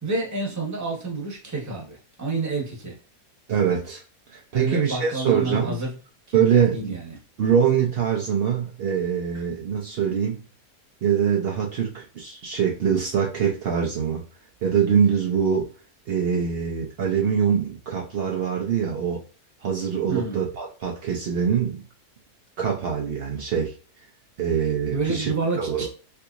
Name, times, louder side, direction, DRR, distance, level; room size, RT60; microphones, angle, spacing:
voice 1, 0.0-3.0 4.5-5.9 6.3-7.0 20.1-20.4 24.9-26.1, right 3 dB, 15° right, 0.7 m, -29 dB
voice 2, 3.5-4.0 4.3-5.8 6.3-6.9 7.4-10.4 11.0-14.2 14.6-15.7 16.1-19.2 19.6-21.8 22.6-23.7 24.4-25.3 25.6-25.9, right 7 dB, 85° right, 0.5 m, -23 dB
3.5 x 2.8 x 2.4 m
omnidirectional pair, 1.7 m